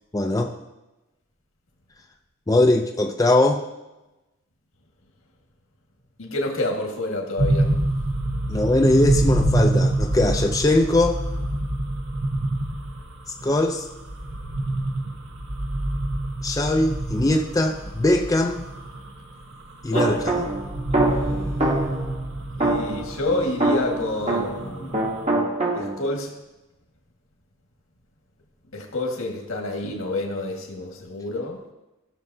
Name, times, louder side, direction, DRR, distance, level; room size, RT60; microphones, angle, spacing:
voice 1, 0.1-0.5 2.5-3.6 8.5-11.2 13.4-13.9 16.4-18.6 19.8-20.4, left 2 dB, 15° left, 3 dB, 0.4 m, -21 dB
voice 2, 6.2-7.7 19.9-20.0 21.2-21.6 22.6-25.0 25.7-26.3 28.7-31.6, left 2 dB, 80° left, 0 dB, 1.7 m, -28 dB
sound 1, 7.4-25.2, right 1 dB, 85° right, 1.1 m, -26 dB
sound 2, 19.9-22.1 22.6-24.7 24.9-26.1, right 2 dB, 30° right, 1.2 m, -24 dB
15.5 x 6.5 x 2.7 m, 1.0 s
head